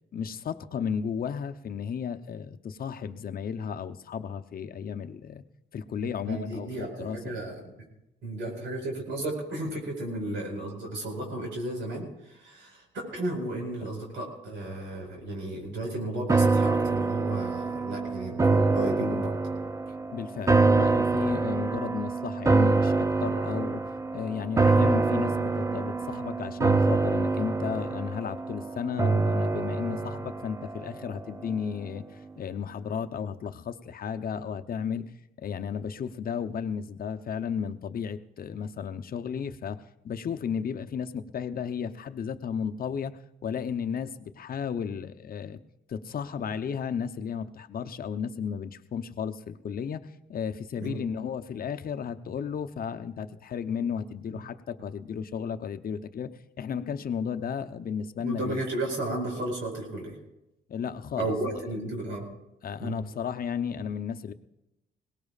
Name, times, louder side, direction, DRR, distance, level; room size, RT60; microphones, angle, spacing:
voice 1, 0.1-5.4 5.7-7.3 20.1-23.8 24.1-35.1 35.4-45.6 45.9-56.3 56.6-58.6 60.7-61.3 62.6-64.3, left 7 dB, 50° left, 9 dB, 0.8 m, -34 dB
voice 2, 6.2-7.5 8.2-19.4 50.8-51.0 54.3-54.4 58.2-60.2 61.2-62.3 62.8-63.0, right 1 dB, 75° right, 0 dB, 4.9 m, -33 dB
sound 1, 16.3-31.6 32.0-32.1, right 3 dB, 15° right, 0.5 m, -26 dB
21.5 x 18.0 x 2.4 m, 0.90 s
cardioid pair, 90°, 20 cm